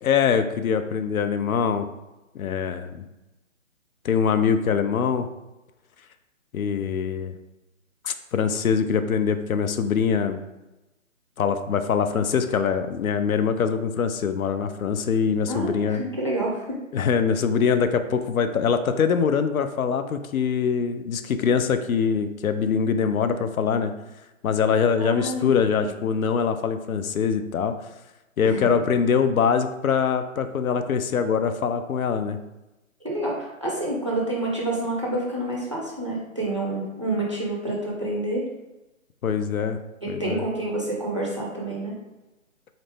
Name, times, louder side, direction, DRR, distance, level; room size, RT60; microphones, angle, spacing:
voice 1, 0.0-1.9 2.3-3.0 4.0-5.3 6.5-7.3 8.0-10.4 11.4-16.0 16.9-23.9 24.4-27.7 28.4-32.4 39.2-39.8 40.1-40.4, left 6 dB, 80° left, 9 dB, 0.6 m, -23 dB
voice 2, 15.5-16.8 25.0-25.9 28.4-28.7 33.0-38.4 40.0-42.0, right 1 dB, 25° right, -4 dB, 0.5 m, -28 dB
4.0 x 3.2 x 3.3 m, 1.0 s
hypercardioid pair, 165°, 42 cm